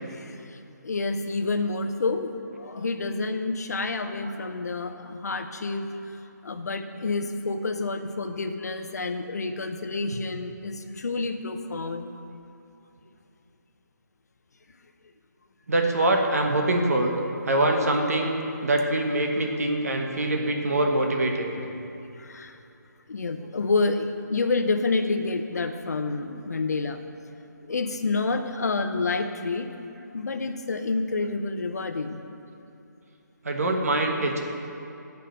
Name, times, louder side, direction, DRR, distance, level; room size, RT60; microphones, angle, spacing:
voice 1, 0.8-2.3 2.6-5.9 6.4-12.1 22.2-22.5 23.1-27.0 27.7-29.7 30.1-32.2, left 3 dB, 60° left, 7 dB, 0.7 m, -28 dB
voice 2, 15.7-17.1 17.5-21.5 33.4-34.4, right 1 dB, 50° right, 3 dB, 1.2 m, -24 dB
8.7 x 5.3 x 7.7 m, 2.8 s
hypercardioid pair, 175°, 10 cm